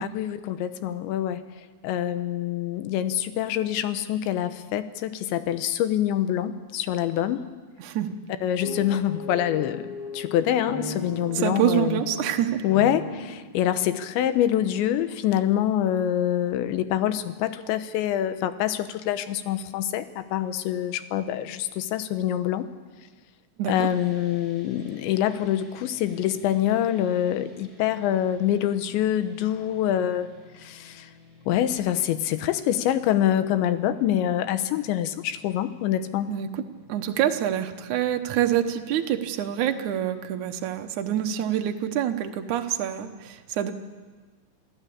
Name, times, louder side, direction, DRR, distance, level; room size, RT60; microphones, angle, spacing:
voice 1, 0.0-1.4 1.8-7.5 8.4-12.0 12.6-22.7 23.7-30.3 30.6-31.1 31.5-36.3, left 11 dB, 90° left, 11 dB, 3.3 m, -25 dB
voice 2, 7.8-8.2 11.3-12.6 23.6-23.9 36.3-36.6 36.9-43.7, right 11 dB, 75° right, 6 dB, 1.8 m, -26 dB
sound 1, 8.6-13.3, left 2 dB, 40° left, 4.7 m, -36 dB
sound 2, 23.7-39.4, left 4 dB, 5° left, 4.9 m, -53 dB
27.5 x 16.0 x 8.6 m, 1.4 s
omnidirectional pair, 5.1 m